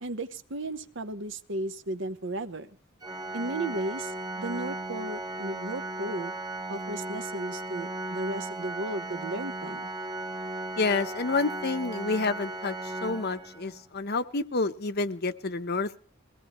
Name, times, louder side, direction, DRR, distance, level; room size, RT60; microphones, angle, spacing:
voice 1, 0.0-2.7 3.3-6.3 6.7-9.9, right 2 dB, 65° right, 11 dB, 1.0 m, -35 dB
Organ, 3.0-13.9, right 2 dB, 20° right, 1.0 m, -36 dB
voice 2, 10.8-12.8 13.0-16.0, left 3 dB, 50° left, 10 dB, 0.9 m, -29 dB
21.5 x 17.0 x 3.1 m, 0.42 s
head